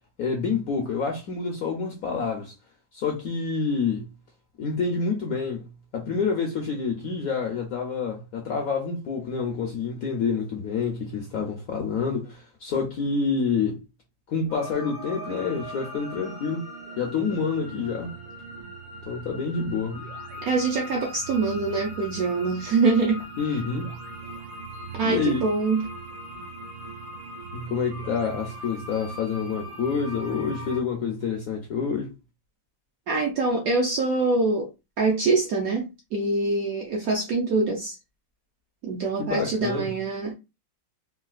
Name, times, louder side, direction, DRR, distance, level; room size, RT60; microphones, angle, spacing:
voice 1, 0.2-2.5 2.9-4.1 4.6-13.8 14.3-16.7 17.0-18.2 19.0-20.1 23.4-24.0 25.0-25.4 27.5-32.1 39.2-40.0, left 5 dB, 70° left, 0.8 m, -28 dB
sound 1, 14.5-30.8, right 1 dB, 85° right, 1.6 m, -39 dB
voice 2, 20.4-23.3 25.0-25.9 33.1-34.7 35.0-38.0 38.8-40.3, right 3 dB, 70° right, 0.9 m, -24 dB
3.8 x 2.4 x 2.4 m
omnidirectional pair, 2.1 m